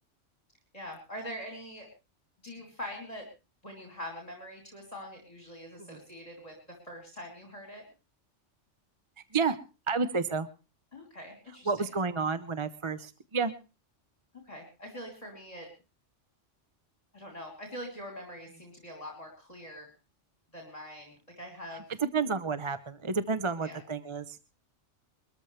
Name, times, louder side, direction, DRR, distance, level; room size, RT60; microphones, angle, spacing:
voice 1, 0.7-1.9 2.4-3.3 3.6-7.8 10.9-11.8 14.4-15.7 17.1-19.9 20.5-21.8 23.6-23.8, equal, 30° left, 1 dB, 3.3 m, -43 dB
voice 2, 9.9-10.5 11.7-13.5 22.0-24.4, right 4 dB, 30° right, 12 dB, 0.7 m, -30 dB
22.5 x 13.5 x 3.2 m, 0.31 s
omnidirectional pair, 1.3 m